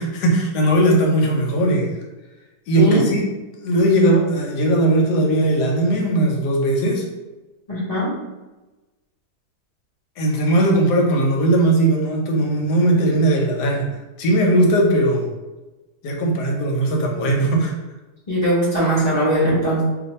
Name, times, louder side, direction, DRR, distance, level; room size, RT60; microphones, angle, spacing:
voice 1, 0.0-1.9 2.7-3.2 3.6-7.0 10.2-13.9 14.2-15.3 16.0-17.7, right 1 dB, 85° left, 0 dB, 1.3 m, -18 dB
voice 2, 7.7-8.1 18.3-19.8, equal, 30° left, -8 dB, 0.9 m, -19 dB
2.6 x 2.6 x 4.1 m, 1.1 s
omnidirectional pair, 1.7 m